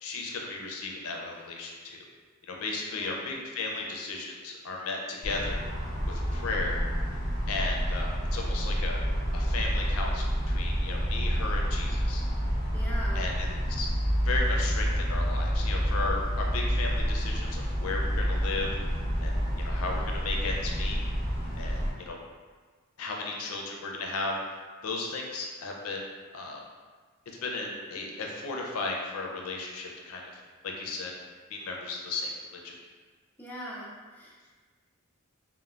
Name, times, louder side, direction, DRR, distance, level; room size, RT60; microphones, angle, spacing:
voice 1, 0.0-2.1 2.4-5.6 6.1-6.8 7.5-9.0 9.3-12.2 13.1-13.9 14.2-18.7 19.2-19.3 19.6-21.0 21.6-22.2 23.0-24.3 24.8-26.6 27.4-30.2 30.6-31.1 31.5-32.3 32.6-32.8, left 3 dB, 75° left, 0 dB, 0.4 m, -35 dB
voice 2, 2.9-3.3 12.7-13.3 33.4-34.5, equal, 10° left, -5 dB, 0.4 m, -41 dB
sound 1, 5.2-21.9, equal, 40° right, 1.1 m, -29 dB
3.2 x 2.0 x 2.3 m, 1.4 s
head